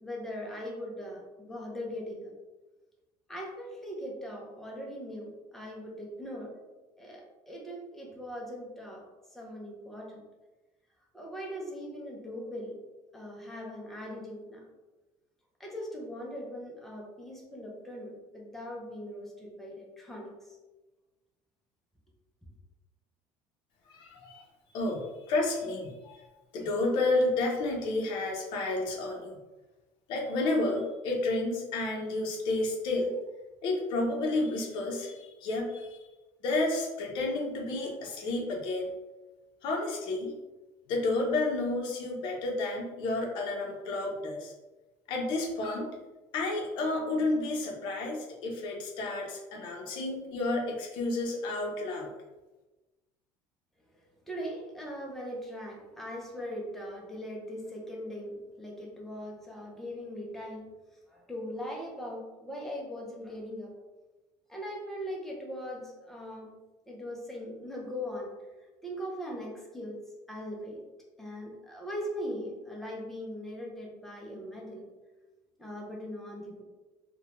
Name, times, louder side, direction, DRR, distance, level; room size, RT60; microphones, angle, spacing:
voice 1, 0.0-2.3 3.3-6.6 7.0-9.0 9.3-10.2 11.1-12.8 13.1-14.6 15.6-20.4 53.9-60.7 61.1-63.8 64.5-66.5 66.9-68.3 68.8-70.0 70.3-70.8 71.2-74.9 75.6-76.6, equal, 5° left, -2 dB, 0.4 m, -40 dB
voice 2, 23.9-24.4 24.7-26.3 26.5-29.4 30.1-33.1 33.6-36.0 36.4-38.9 39.6-40.3 40.9-44.5 45.1-45.9 46.3-52.1, left 2 dB, 50° left, 0 dB, 0.6 m, -31 dB
2.6 x 2.1 x 2.8 m, 1.1 s
cardioid pair, 170°, 10 cm